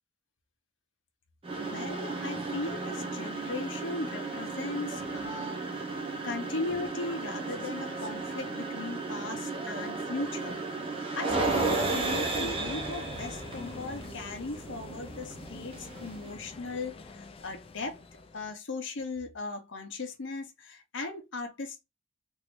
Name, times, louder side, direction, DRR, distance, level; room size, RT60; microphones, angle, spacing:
sound 1, 1.4-16.4, right 3 dB, 25° right, 0.6 m, -34 dB
voice 1, 1.6-18.0 18.3-21.8, left 3 dB, 65° left, 0.7 m, -38 dB
sound 2, 11.3-18.5, left 2 dB, 30° left, 0.4 m, -42 dB
3.1 x 2.6 x 3.0 m
head